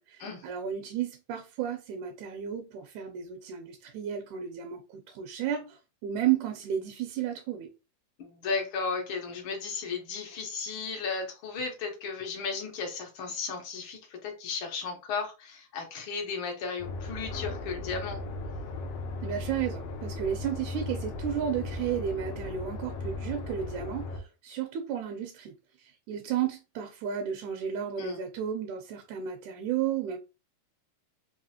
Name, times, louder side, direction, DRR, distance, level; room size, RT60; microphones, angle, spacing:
voice 1, 0.0-7.7 19.2-30.2, right 9 dB, 80° right, 2.0 m, -33 dB
voice 2, 8.2-18.2 28.0-28.2, left 5 dB, 60° left, 1.4 m, -35 dB
sound 1, 16.8-24.2, left 2 dB, 75° left, 1.5 m, -37 dB
4.8 x 2.8 x 2.7 m
omnidirectional pair, 3.5 m